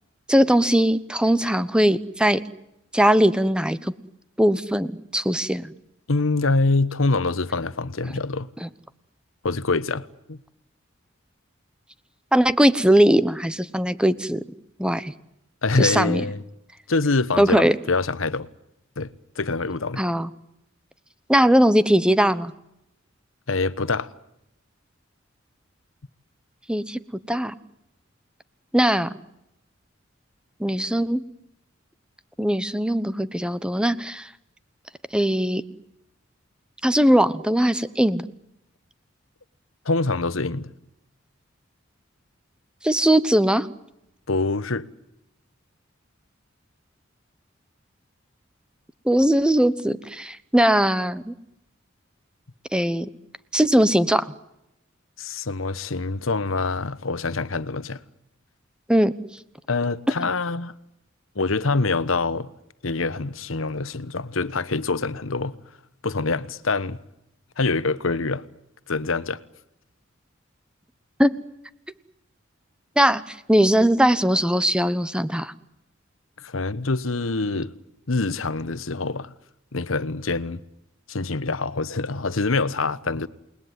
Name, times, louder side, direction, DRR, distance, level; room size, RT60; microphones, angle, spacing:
voice 1, 0.3-2.4 2.9-3.9 4.4-5.7 8.6-8.7 12.3-14.4 14.8-15.1 15.8-16.2 17.4-17.7 20.0-20.3 21.3-22.5 26.7-27.0 27.3-27.5 28.7-29.1 30.6-31.2 32.4-34.3 35.1-35.6 36.8-38.2 42.8-43.7 49.0-51.3 52.7-53.1 53.5-54.3 58.9-59.1 71.2-71.3 73.0-73.2 73.5-75.5, equal, 5° right, 1.0 m, -20 dB
voice 2, 6.1-8.5 9.4-10.4 15.6-16.4 16.9-18.5 19.0-19.1 19.4-20.0 23.5-24.1 39.8-40.7 44.3-44.9 55.2-58.0 59.7-60.7 61.3-62.5 62.8-65.6 66.0-67.0 67.6-68.4 68.9-69.4 76.4-77.7 78.1-79.3 79.7-80.6 81.1-83.3, left 3 dB, 80° left, 1.2 m, -25 dB
29.0 x 20.5 x 9.5 m
head